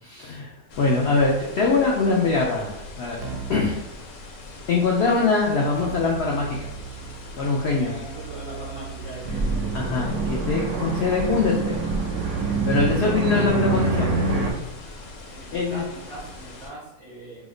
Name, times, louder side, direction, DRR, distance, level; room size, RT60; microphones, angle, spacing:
voice 1, 0.0-3.2 3.5-3.8 4.7-6.7 7.4-7.9 9.7-11.8 12.6-14.1 15.5-15.8, left 4 dB, 85° left, -2 dB, 0.5 m, -23 dB
sound 1, 0.7-16.7, left 2 dB, 70° left, 1.0 m, -42 dB
Keyboard (musical), 3.2-3.8 5.8-14.7, right 9 dB, 85° right, 1.1 m, -40 dB
voice 2, 7.7-9.7 15.3-17.5, right 1 dB, 35° right, -7 dB, 0.4 m, -40 dB
sound 2, 9.2-14.5, right 3 dB, 70° right, 0.8 m, -25 dB
2.8 x 2.1 x 3.7 m, 0.91 s
omnidirectional pair, 1.7 m